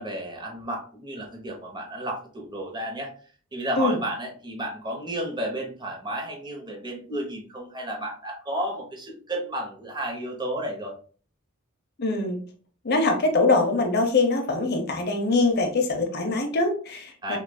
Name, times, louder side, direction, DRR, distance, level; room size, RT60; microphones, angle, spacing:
voice 1, 0.0-3.1 3.5-10.9 17.2-17.4, right 1 dB, 20° right, 0 dB, 0.9 m, -32 dB
voice 2, 12.0-12.4 12.8-17.4, left 3 dB, 50° left, 4 dB, 0.7 m, -23 dB
6.1 x 2.4 x 2.2 m, 0.42 s
head